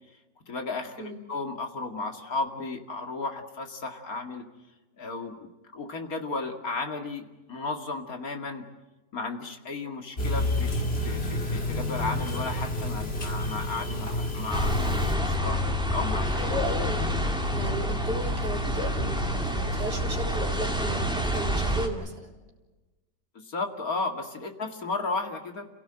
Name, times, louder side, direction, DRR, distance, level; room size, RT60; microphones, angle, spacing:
voice 1, 0.5-4.5 5.0-8.7 9.1-15.6 15.9-16.6 23.3-25.7, left 3 dB, 55° left, 5 dB, 2.6 m, -34 dB
sound 1, 10.2-15.1, left 1 dB, 35° left, 2.6 m, -29 dB
sound 2, 14.5-21.9, equal, 5° right, 2.3 m, -27 dB
voice 2, 16.2-17.0 17.5-22.3, equal, 65° right, 2 dB, 4.2 m, -35 dB
28.5 x 17.0 x 8.9 m, 1.2 s
omnidirectional pair, 1.9 m